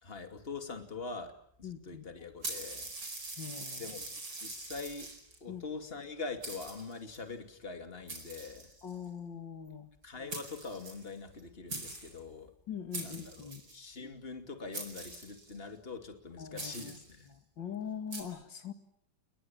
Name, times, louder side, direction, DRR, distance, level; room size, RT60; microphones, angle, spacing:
voice 1, 0.0-2.9 3.7-5.1 5.4-8.7 10.0-12.5 13.0-17.3, left 4 dB, 30° left, 7 dB, 2.8 m, -43 dB
voice 2, 1.6-2.0 3.4-3.8 5.5-5.6 8.8-9.9 12.7-13.6 16.4-16.9 17.3-18.7, left 7 dB, 85° left, 8 dB, 2.8 m, -42 dB
sound 1, 2.4-5.4 6.0-6.1 6.4-7.2 8.1-9.0 10.0-10.1 10.3-11.4 11.7-12.2 12.9-13.8 14.7-15.6 16.6-17.1 18.1-18.2, right 3 dB, 70° right, 5.5 m, -43 dB
30.0 x 22.0 x 8.9 m, 0.66 s
omnidirectional pair, 2.0 m